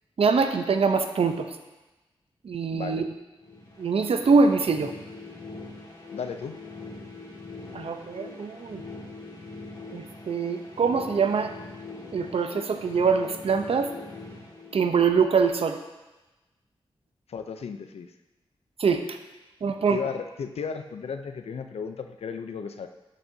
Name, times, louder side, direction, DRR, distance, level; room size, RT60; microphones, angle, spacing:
voice 1, 0.2-1.5 2.4-3.1 3.8-4.9 7.7-8.8 9.9-11.5 12.1-13.9 14.7-15.8 18.8-19.2 19.6-20.0, right 5 dB, 70° right, 7 dB, 0.7 m, -24 dB
voice 2, 2.7-3.1 6.1-6.6 17.3-18.1 19.9-22.9, left 6 dB, 85° left, 8 dB, 0.5 m, -34 dB
sound 1, 3.4-15.3, left 3 dB, 40° left, 2.2 m, -42 dB
12.5 x 6.3 x 2.7 m, 1.1 s
cardioid pair, 60°, 10 cm